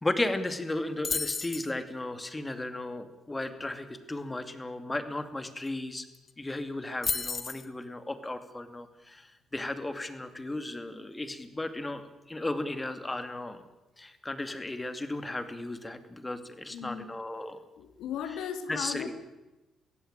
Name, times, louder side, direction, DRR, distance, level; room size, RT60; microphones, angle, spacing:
voice 1, 0.0-6.1 6.4-13.6 14.0-17.6 18.7-19.1, left 2 dB, 15° left, 9 dB, 2.6 m, -35 dB
sound 1, 1.0-1.7 5.7-5.8 6.0-6.3 7.0-7.7, left 4 dB, 35° left, 1.3 m, -32 dB
voice 2, 16.7-17.1 17.8-19.1, left 8 dB, 85° left, 9 dB, 2.4 m, -37 dB
23.0 x 16.0 x 9.0 m, 1.0 s
cardioid pair, 90°, 0 cm